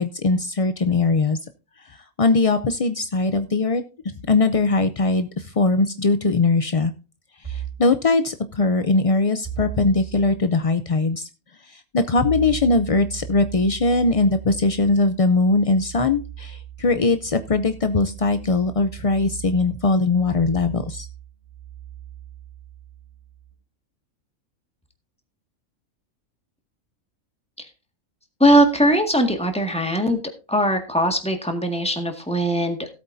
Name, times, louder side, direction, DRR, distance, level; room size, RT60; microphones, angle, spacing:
voice 1, 0.0-1.4 1.8-3.8 4.3-6.9 7.4-11.3 11.6-21.1, left 3 dB, 55° left, 10 dB, 0.4 m, -21 dB
sound 1, 7.4-7.9 9.4-10.4 12.2-23.5, right 11 dB, 20° right, 3.8 m, -37 dB
voice 2, 28.4-30.2 30.5-32.9, equal, 5° left, 4 dB, 1.8 m, -20 dB
17.5 x 8.2 x 2.7 m, 0.32 s
omnidirectional pair, 1.5 m